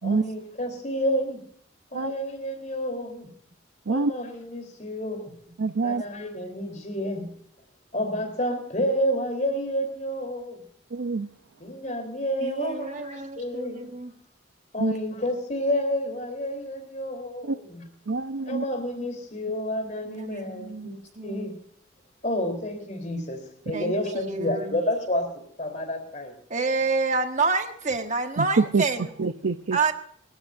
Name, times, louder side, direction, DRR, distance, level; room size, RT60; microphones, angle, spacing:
voice 1, 0.0-1.4 1.9-3.3 3.9-5.3 5.8-7.3 7.9-10.6 11.6-13.9 14.7-17.8 18.5-21.5 22.2-26.3, equal, 35° left, 6 dB, 3.6 m, -30 dB
voice 2, 5.6-6.0 10.9-11.3 14.8-14.9 17.4-17.6 18.1-18.6 28.4-28.8 29.2-29.8, right 4 dB, 75° right, 10 dB, 0.6 m, -25 dB
voice 3, 12.4-14.1 20.1-21.5 23.7-24.8 26.5-29.1 29.7-29.9, right 4 dB, 35° right, 5 dB, 1.5 m, -28 dB
28.5 x 13.5 x 2.6 m, 0.64 s
head